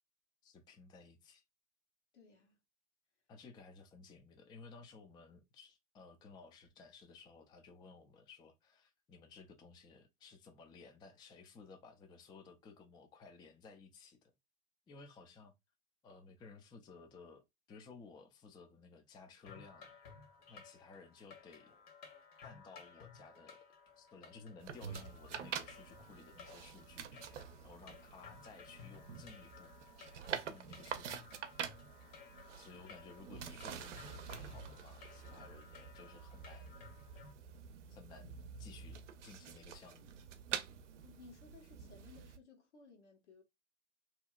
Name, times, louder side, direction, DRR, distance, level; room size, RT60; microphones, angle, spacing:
voice 1, 0.4-1.4 3.3-14.3 14.9-15.5 16.0-20.0 20.5-21.7 22.4-23.6 24.0-27.1 27.6-29.7 30.4-31.2 32.6-36.8 37.9-40.2, left 4 dB, 10° left, 0.4 m, -57 dB
voice 2, 2.1-2.6 41.0-43.4, left 4 dB, 75° left, 1.4 m, -59 dB
sound 1, 19.4-37.3, left 5 dB, 45° left, 1.2 m, -57 dB
sound 2, 24.6-42.4, right 8 dB, 75° right, 0.6 m, -47 dB
2.9 x 2.8 x 2.3 m
hypercardioid pair, 95°, 36 cm